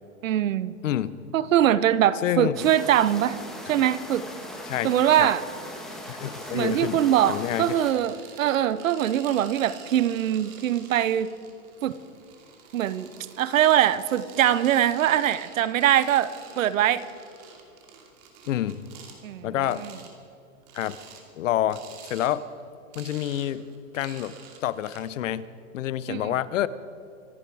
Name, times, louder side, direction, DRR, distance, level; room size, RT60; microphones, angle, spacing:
voice 1, 0.2-0.8 1.3-3.4 3.7-4.3 4.8-5.4 6.5-11.3 11.8-11.9 12.7-13.1 13.4-17.0 19.2-19.5 19.8-19.9 26.1-26.3, right 11 dB, 75° right, 17 dB, 0.9 m, -22 dB
voice 2, 0.8-1.2 2.2-2.7 4.7-4.9 5.2-5.3 6.1-7.0 7.3-7.7 18.5-18.9 19.4-19.8 20.7-21.0 21.4-21.8 22.1-22.4 22.9-23.7 23.9-24.3 24.6-25.5 25.7-26.7, left 12 dB, 70° left, 17 dB, 0.8 m, -27 dB
sound 1, 2.5-7.9, left 1 dB, ahead, 1.5 m, -39 dB
sound 2, 5.5-19.2 19.6-20.1 20.6-21.2 21.7-22.3 22.6-25.0, right 6 dB, 35° right, 2.5 m, -48 dB
25.5 x 10.5 x 4.8 m, 2.5 s
supercardioid pair, 160°, 40 cm